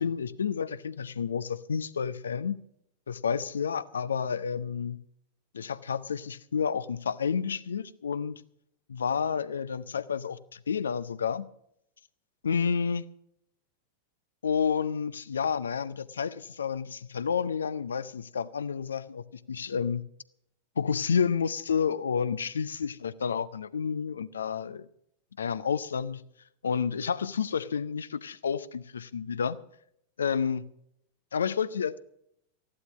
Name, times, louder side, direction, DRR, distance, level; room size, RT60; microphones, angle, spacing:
voice 1, 0.0-2.6 3.1-5.0 5.5-8.4 8.9-11.5 12.4-13.0 14.4-20.0 20.8-24.9 25.4-26.2 26.6-29.6 30.2-30.6 31.3-32.0, left 6 dB, 70° left, 0.6 m, -30 dB
14.0 x 11.5 x 6.2 m
figure-of-eight pair, 90°, 0 cm